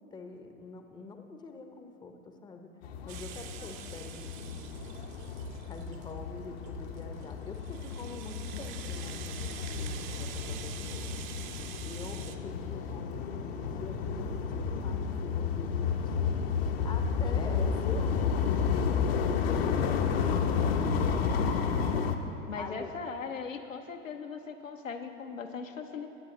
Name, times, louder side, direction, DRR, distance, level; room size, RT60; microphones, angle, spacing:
voice 1, 0.0-2.1 2.4-2.7 3.0-4.9 5.6-9.5 9.8-11.1 11.8-16.3 16.8-18.3 22.6-22.9, left 4 dB, 10° left, 6 dB, 0.7 m, -45 dB
sound 1, 2.8-22.2, left 6 dB, 50° left, 0.8 m, -31 dB
Rattle (instrument), 3.1-6.1 6.6-12.4, right 11 dB, 40° right, 0.7 m, -46 dB
voice 2, 21.1-21.4 21.9-22.1 22.5-26.1, left 5 dB, 80° left, 4 dB, 0.9 m, -39 dB
19.5 x 9.7 x 3.0 m, 2.8 s
figure-of-eight pair, 90°, 39 cm